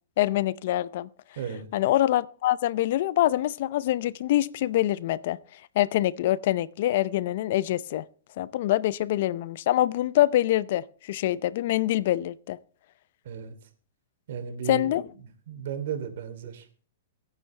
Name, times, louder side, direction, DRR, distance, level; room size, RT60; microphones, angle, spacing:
voice 1, 0.2-1.1 1.7-5.4 5.8-8.0 8.4-12.6 14.7-15.0, left 14 dB, 60° left, 0.6 m, -25 dB
voice 2, 1.3-1.7 13.2-13.7 14.3-16.7, right 8 dB, 65° right, 2.9 m, -35 dB
24.5 x 9.1 x 3.3 m
hypercardioid pair, 140°, 0 cm